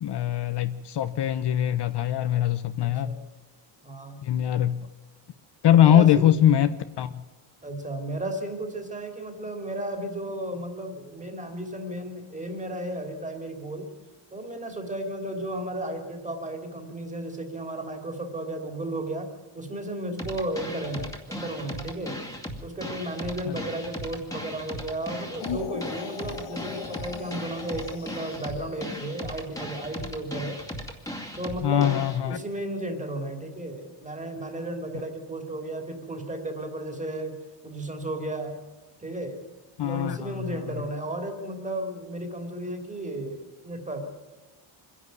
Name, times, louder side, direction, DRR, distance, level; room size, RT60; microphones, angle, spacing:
voice 1, 0.0-3.2 4.2-4.8 5.6-7.1 23.5-23.6 31.6-32.4 39.8-40.6, left 11 dB, 55° left, 11 dB, 0.8 m, -22 dB
voice 2, 2.8-3.2 3.8-4.2 5.8-6.3 7.6-13.9 14.3-19.3 19.5-22.2 22.6-30.6 31.4-37.3 37.6-38.5 39.0-39.4 39.8-44.2, right 1 dB, 15° right, 5 dB, 3.1 m, -34 dB
sound 1, 20.2-32.2, equal, 5° left, 2.4 m, -37 dB
sound 2, 25.4-29.4, left 9 dB, 80° left, 1.6 m, -39 dB
24.5 x 11.0 x 9.5 m, 1.2 s
cardioid pair, 125°, 50 cm